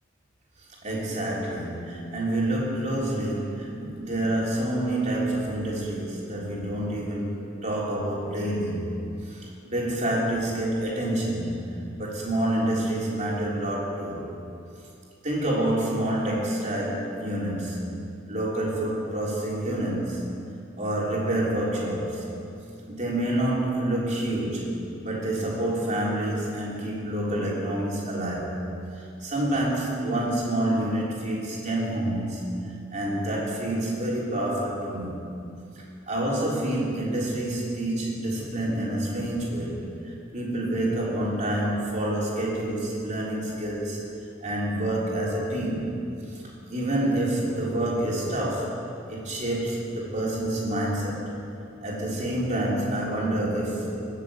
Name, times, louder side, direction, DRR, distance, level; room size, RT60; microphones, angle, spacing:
voice 1, 0.8-8.9 9.3-14.3 15.2-18.0 18.3-20.2 20.8-22.2 22.9-28.5 28.9-35.2 36.1-44.0 44.4-46.0 46.3-46.4 46.7-48.8 49.1-51.2 51.8-53.9, right 1 dB, 40° right, -4 dB, 3.5 m, -28 dB
21.0 x 7.4 x 8.3 m, 2.6 s
head